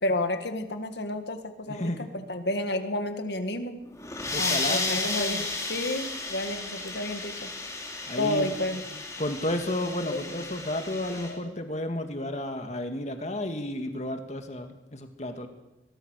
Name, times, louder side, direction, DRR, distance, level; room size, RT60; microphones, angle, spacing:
voice 1, 0.0-3.8 4.4-7.5 8.2-9.0 10.0-10.7 11.3-11.4, left 1 dB, 75° left, 8 dB, 2.1 m, -31 dB
voice 2, 1.7-2.1 4.3-5.5 8.1-8.5 9.2-15.5, left 1 dB, 40° left, 6 dB, 2.2 m, -32 dB
sound 1, 3.9-11.3, left 3 dB, 20° left, 3.5 m, -33 dB
22.0 x 21.0 x 6.6 m, 1.0 s
head